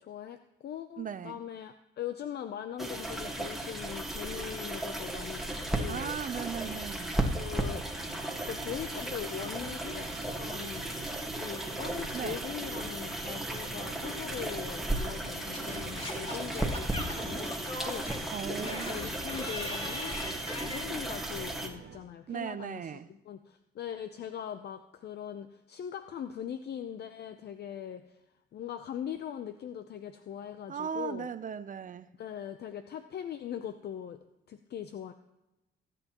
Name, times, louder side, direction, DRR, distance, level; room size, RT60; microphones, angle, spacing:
voice 1, 0.0-6.4 7.2-7.9 8.4-10.9 11.4-20.2 20.6-28.1 28.5-31.3 32.2-35.1, left 9 dB, 55° left, 9 dB, 0.6 m, -41 dB
voice 2, 1.0-1.4 5.9-7.2 12.1-12.4 18.3-19.0 22.3-23.1 30.7-32.1, right 7 dB, 40° right, 14 dB, 0.6 m, -37 dB
sound 1, 2.8-21.7, right 1 dB, ahead, 1.6 m, -35 dB
sound 2, 7.4-22.0, right 7 dB, 60° right, 1.2 m, -49 dB
Singing / Scratching (performance technique), 15.5-20.8, left 1 dB, 30° left, 2.5 m, -40 dB
19.5 x 9.1 x 3.0 m, 0.95 s
cardioid pair, 90°, 20 cm